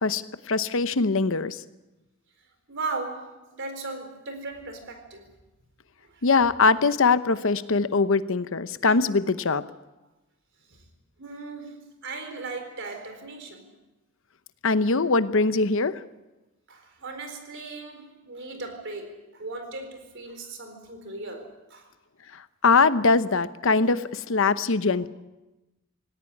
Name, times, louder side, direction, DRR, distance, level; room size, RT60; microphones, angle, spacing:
voice 1, 0.0-1.6 6.2-9.6 14.6-16.0 22.3-25.1, left 4 dB, 65° left, 13 dB, 0.9 m, -22 dB
voice 2, 2.7-5.3 6.0-6.2 10.7-10.8 11.2-13.7 14.8-14.9 16.7-21.9, right 3 dB, 60° right, 7 dB, 4.2 m, -37 dB
19.0 x 17.5 x 9.9 m, 1.0 s
head